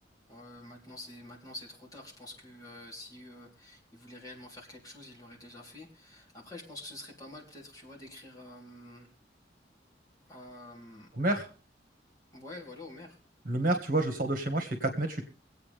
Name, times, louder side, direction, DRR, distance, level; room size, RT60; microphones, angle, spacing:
voice 1, 0.3-9.1 10.3-11.1 12.3-13.2, left 1 dB, 20° left, -3 dB, 3.4 m, -47 dB
voice 2, 11.1-11.5 13.4-15.2, right 2 dB, 50° right, 6 dB, 1.7 m, -29 dB
24.0 x 8.5 x 3.4 m, 0.39 s
head